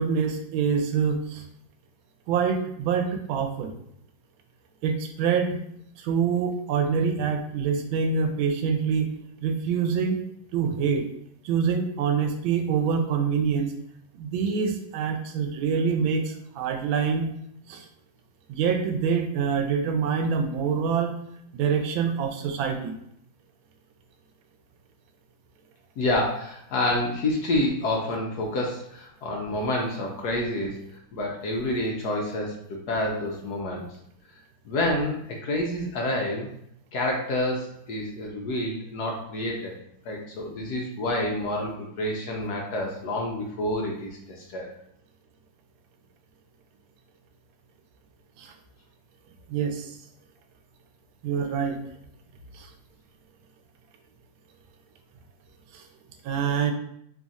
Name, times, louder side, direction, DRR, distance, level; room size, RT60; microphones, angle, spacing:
voice 1, 0.0-1.4 2.3-3.7 4.8-5.6 6.0-9.1 9.4-10.2 10.5-11.0 11.4-13.7 14.1-17.3 17.7-17.9 18.5-21.1 21.5-22.9 48.4-48.5 49.5-50.0 51.2-51.8 52.5-52.7 55.7-55.8 56.2-56.7, right 6 dB, 90° right, 5 dB, 1.4 m, -25 dB
voice 2, 26.0-30.8 31.1-33.8 34.6-36.5 36.9-39.7 40.0-44.7, left 1 dB, 70° left, -1 dB, 1.0 m, -28 dB
3.3 x 2.4 x 4.0 m, 0.72 s
omnidirectional pair, 2.1 m